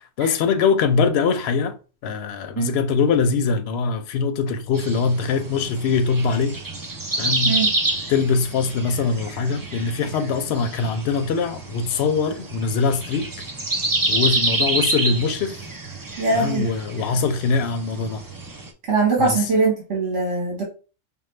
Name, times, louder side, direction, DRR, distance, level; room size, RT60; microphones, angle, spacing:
voice 1, 0.2-1.8 2.0-6.6 7.2-7.6 8.1-13.3 14.1-15.6 16.3-18.2 19.2-19.5, left 5 dB, 60° left, 0.8 m, -22 dB
sound 1, 4.7-18.7, right 2 dB, 35° right, 0.3 m, -28 dB
voice 2, 16.2-16.6 18.9-20.6, right 3 dB, 65° right, 1.6 m, -21 dB
5.2 x 2.3 x 3.2 m
omnidirectional pair, 1.3 m